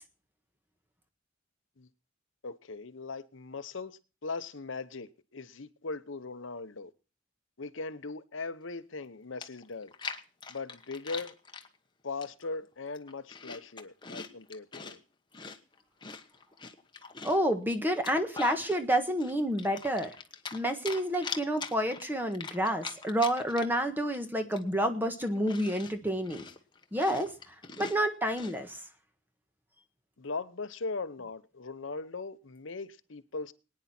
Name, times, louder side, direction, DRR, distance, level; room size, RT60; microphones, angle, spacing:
voice 1, 2.4-6.9 7.6-9.9 10.5-11.3 12.0-15.0 30.2-33.5, left 3 dB, 75° left, 0.9 m, -39 dB
Chewing mastication, 9.0-9.1 9.4-11.7 12.2-12.6 12.9-15.0 15.3-17.5 17.9-18.8 19.2-20.6 20.9-23.9 24.1-24.2 24.5-28.6, left 5 dB, 25° left, 1.2 m, -43 dB
voice 2, 17.2-20.1 20.5-26.4 26.9-28.8, equal, 10° right, 1.5 m, -29 dB
22.5 x 9.7 x 4.4 m
head